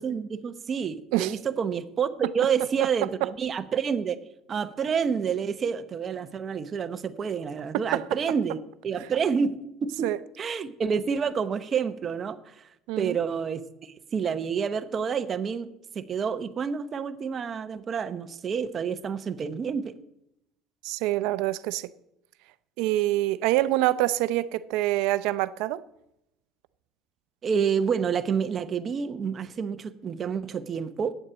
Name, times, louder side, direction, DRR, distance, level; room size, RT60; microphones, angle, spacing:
voice 1, 0.0-4.2 4.5-8.6 8.8-10.1 10.4-12.6 13.0-15.7 15.9-19.9 27.4-31.1, right 6 dB, 35° right, 0.8 m, -28 dB
voice 2, 7.7-8.0 10.0-10.2 12.9-13.2 20.8-21.9 22.8-25.8, right 16 dB, 80° right, 0.5 m, -26 dB
8.9 x 7.3 x 8.1 m
cardioid pair, 130°, 0 cm